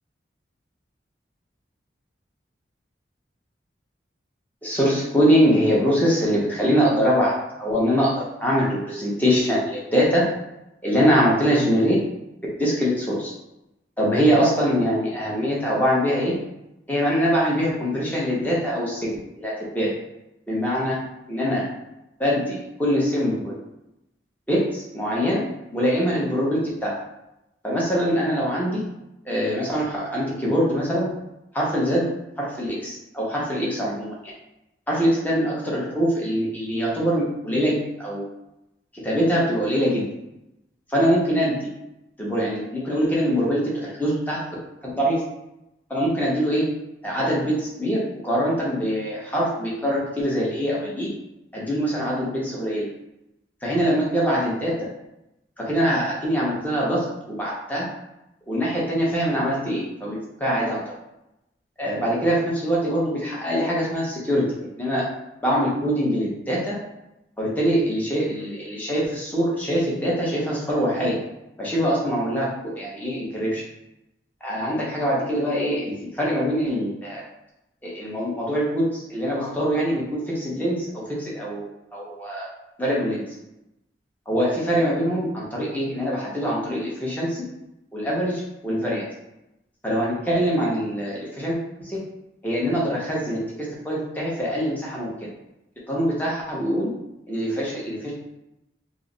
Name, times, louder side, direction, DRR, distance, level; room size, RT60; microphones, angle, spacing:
voice 1, 4.6-7.3 7.6-8.1 8.4-10.2 10.8-12.0 12.6-13.3 14.0-16.3 16.9-19.1 19.4-19.9 20.5-21.0 21.3-21.6 22.2-23.5 24.5-25.5 25.7-26.9 27.6-28.8 29.3-31.1 31.5-32.0 32.4-34.1 34.9-38.2 39.0-40.0 40.9-41.6 42.2-43.6 44.0-44.4 44.8-45.2 45.9-46.7 47.0-51.1 51.5-52.8 53.6-54.7 55.6-57.9 58.5-60.8 61.8-64.4 64.8-65.1 65.4-66.8 67.4-71.1 71.6-72.5 72.7-73.6 74.4-77.2 77.8-82.5 82.8-83.2 84.3-87.4 87.9-89.0 89.8-92.0 92.4-95.1 95.9-96.9 97.3-98.1, equal, 10° left, -5 dB, 0.8 m, -23 dB
3.1 x 2.0 x 3.8 m, 0.89 s
head